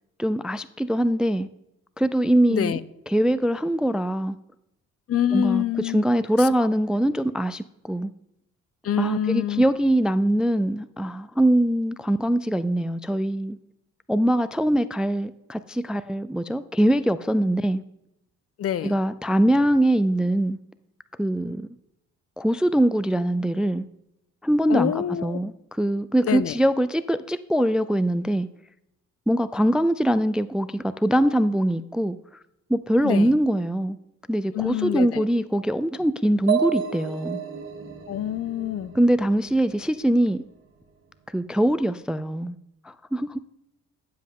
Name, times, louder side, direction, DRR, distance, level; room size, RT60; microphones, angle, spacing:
voice 1, 0.2-1.5 2.0-2.7 3.1-4.4 5.3-5.6 5.9-8.1 9.0-13.6 14.1-17.8 18.8-20.6 21.2-21.8 22.4-23.9 24.4-28.5 29.3-32.2 32.7-34.0 34.3-37.4 38.9-40.4 41.3-42.5 42.8-43.4, right 1 dB, 5° right, 14 dB, 0.3 m, -22 dB
voice 2, 2.5-2.8 5.1-6.0 6.4-6.5 8.8-9.6 18.6-19.0 24.7-25.4 26.2-26.6 33.0-33.4 34.5-35.3 38.1-38.9, left 10 dB, 50° left, 17 dB, 0.6 m, -26 dB
sound 1, 36.5-40.1, right 8 dB, 45° right, 1.5 m, -31 dB
11.5 x 7.6 x 3.7 m, 0.85 s
cardioid pair, 90°, 30 cm